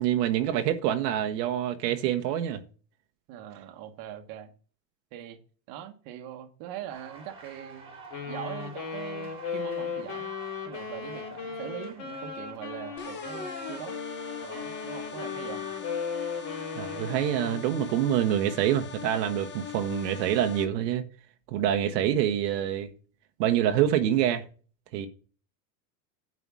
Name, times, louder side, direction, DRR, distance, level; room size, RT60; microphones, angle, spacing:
voice 1, 0.0-2.6 16.8-21.0 21.5-22.9 23.4-24.4 24.9-25.1, right 11 dB, 75° right, 1.3 m, -26 dB
voice 2, 3.3-4.5 5.1-5.4 5.7-8.0 8.2-10.3 10.6-14.0 14.4-15.7, right 11 dB, 45° right, 1.4 m, -41 dB
sound 1, 6.9-18.1, right 3 dB, 10° right, 2.2 m, -50 dB
Wind instrument woodwind instrument, 8.1-17.7, left 6 dB, 35° left, 3.5 m, -37 dB
sound 2, 13.0-20.6, left 8 dB, 20° left, 1.0 m, -40 dB
9.5 x 4.9 x 6.2 m
supercardioid pair, 150°, 50 cm